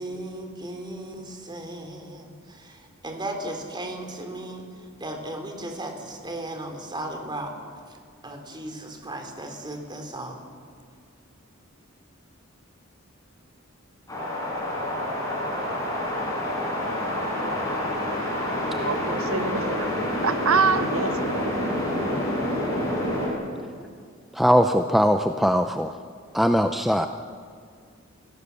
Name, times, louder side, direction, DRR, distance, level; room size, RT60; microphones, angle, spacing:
voice 1, 0.0-7.5 8.2-10.4, right 1 dB, 20° right, 4 dB, 3.2 m, -36 dB
sound 1, 14.1-23.3, left 1 dB, 15° left, 7.4 m, -27 dB
voice 2, 18.7-19.9 20.2-21.6, right 5 dB, 80° right, 12 dB, 0.7 m, -26 dB
voice 3, 24.3-25.9 26.3-27.1, equal, ahead, 6 dB, 0.6 m, -20 dB
28.5 x 17.0 x 7.0 m, 2.1 s
head